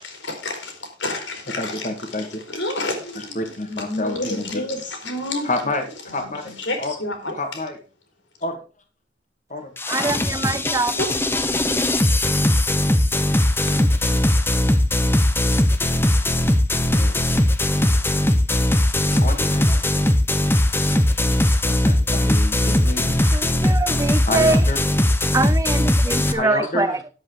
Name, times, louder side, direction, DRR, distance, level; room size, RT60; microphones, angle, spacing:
voice 1, 0.4-1.7 2.5-3.4 3.7-5.5 6.1-6.3 6.6-7.3 11.0-11.1 13.8-13.9, left 2 dB, 80° left, 3.7 m, -29 dB
voice 2, 1.5-2.4 3.2-4.6 5.4-5.9 6.1-6.9 7.3-7.8 8.4-8.6 9.5-10.2 16.9-17.4 19.1-19.8 21.5-23.8 24.2-24.8 26.3-27.0, left 2 dB, 40° left, 2.2 m, -29 dB
sound 1, 9.8-26.3, left 1 dB, 10° left, 0.9 m, -19 dB
voice 3, 9.9-11.0 23.3-24.6 25.3-27.0, right 3 dB, 15° right, 0.5 m, -23 dB
10.5 x 8.0 x 4.9 m
head